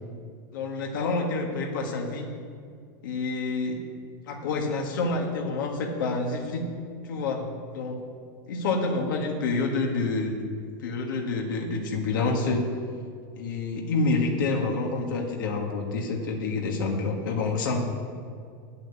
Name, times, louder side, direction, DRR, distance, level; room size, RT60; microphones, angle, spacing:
voice 1, 0.5-2.3 3.0-3.8 4.2-6.6 7.0-8.0 8.5-10.4 10.8-12.6 13.3-17.8, left 3 dB, 85° left, 1 dB, 1.7 m, -28 dB
9.0 x 7.8 x 8.5 m, 2.2 s
supercardioid pair, 160°, 11 cm